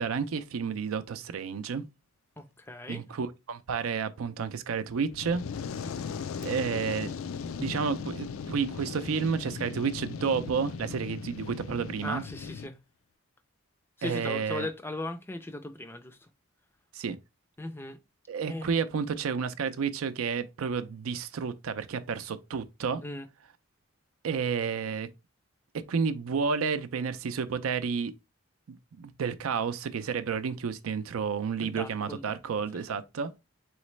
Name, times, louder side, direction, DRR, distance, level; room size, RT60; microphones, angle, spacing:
voice 1, 0.0-1.8 2.9-5.4 6.4-7.1 7.6-12.2 14.0-14.7 16.9-17.2 18.3-23.0 24.2-25.1 25.7-28.1 29.0-33.3, right 6 dB, 85° right, 0.5 m, -31 dB
voice 2, 2.4-3.0 12.0-12.8 14.0-16.3 17.6-18.0 18.5-18.8 23.0-23.3 31.6-32.2 32.7-33.0, left 2 dB, 10° left, 0.4 m, -38 dB
Fire, 5.0-12.7, left 6 dB, 80° left, 0.4 m, -38 dB
4.0 x 3.1 x 3.1 m
head